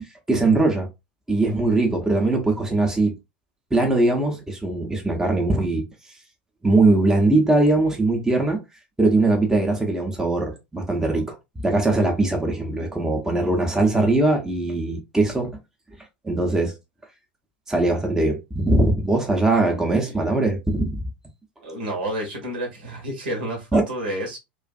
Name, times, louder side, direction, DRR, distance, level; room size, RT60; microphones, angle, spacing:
voice 1, 0.3-0.9 1.3-3.1 3.7-5.8 6.6-8.6 9.0-11.3 11.6-15.5 16.2-16.7 17.7-21.0 23.7-23.8, right 2 dB, 10° right, 0.7 m, -21 dB
voice 2, 19.7-20.2 21.6-24.4, right 1 dB, 70° right, 1.2 m, -30 dB
2.5 x 2.4 x 2.3 m
figure-of-eight pair, 85°, 5 cm